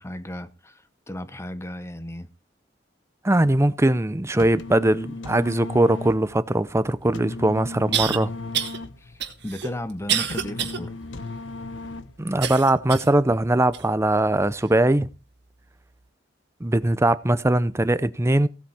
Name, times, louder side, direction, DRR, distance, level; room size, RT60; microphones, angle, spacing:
voice 1, 0.0-2.3 9.0-10.9, left 1 dB, 15° left, 0.9 m, -35 dB
voice 2, 3.2-8.3 12.2-15.1 16.6-18.5, right 1 dB, 15° right, 0.6 m, -21 dB
sound 1, 4.2-12.4, left 2 dB, 70° left, 0.9 m, -36 dB
sound 2, 6.9-7.0 7.9-8.2 8.5-8.8 9.2-10.8 11.3-11.4 12.4-13.2 13.7-13.8 14.6-14.7, right 9 dB, 60° right, 1.8 m, -27 dB
16.5 x 8.2 x 4.3 m
head